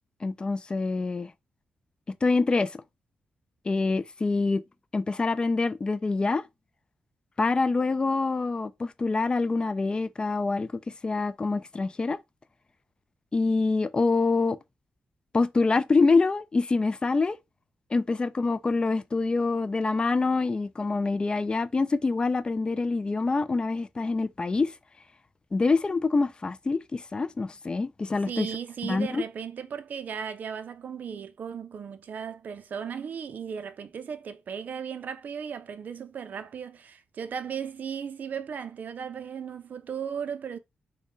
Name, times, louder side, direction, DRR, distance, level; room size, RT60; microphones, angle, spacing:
voice 1, 0.2-1.3 2.2-2.8 3.7-4.6 4.9-6.5 7.4-12.2 13.3-14.6 15.3-17.4 17.9-24.7 25.5-28.5 28.8-29.2, left 3 dB, 30° left, 0.3 m, -26 dB
voice 2, 28.3-40.6, right 7 dB, 60° right, 0.5 m, -36 dB
3.6 x 2.1 x 3.8 m
cardioid pair, 95°, 3 cm